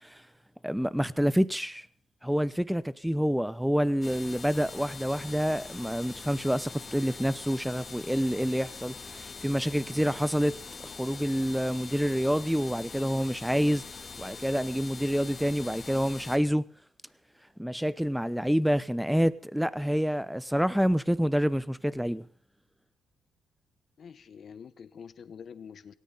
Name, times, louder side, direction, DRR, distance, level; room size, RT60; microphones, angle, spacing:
voice 1, 0.6-1.9 2.2-13.8 14.2-16.6 17.6-22.3, equal, ahead, 0.9 m, -27 dB
sound 1, 4.0-16.4, left 4 dB, 35° left, 2.6 m, -43 dB
voice 2, 24.0-25.9, left 7 dB, 55° left, 1.2 m, -46 dB
18.0 x 17.5 x 4.1 m
cardioid pair, 90°, 0 cm